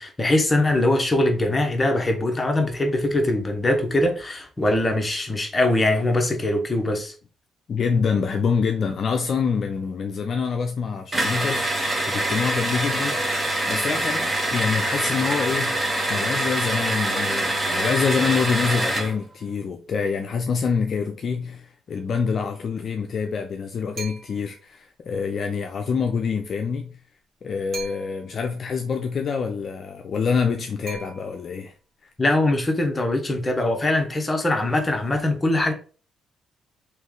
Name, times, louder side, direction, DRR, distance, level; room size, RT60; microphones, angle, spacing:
voice 1, 0.0-7.1 32.2-35.7, left 1 dB, 20° left, 1.0 m, -22 dB
voice 2, 7.7-13.4 13.7-27.0 27.4-31.7, left 5 dB, 55° left, 0.5 m, -26 dB
sound 1, 11.1-19.1, right 1 dB, 20° right, 1.1 m, -24 dB
sound 2, 24.0-24.6 27.7-28.4 30.9-31.7, right 4 dB, 60° right, 1.7 m, -39 dB
3.1 x 3.1 x 3.7 m
cardioid pair, 90°, 0 cm